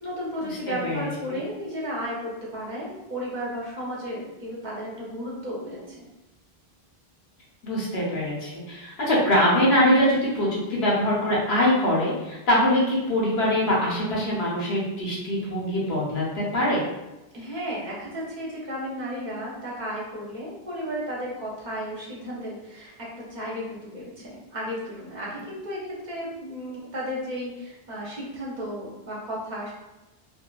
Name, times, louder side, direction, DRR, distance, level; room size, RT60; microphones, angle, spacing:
voice 1, 0.0-6.1 17.3-29.7, equal, 50° right, -5 dB, 0.7 m, -34 dB
voice 2, 7.6-16.8, left 1 dB, 80° left, -5 dB, 1.1 m, -23 dB
2.6 x 2.3 x 2.2 m, 1.0 s
omnidirectional pair, 1.0 m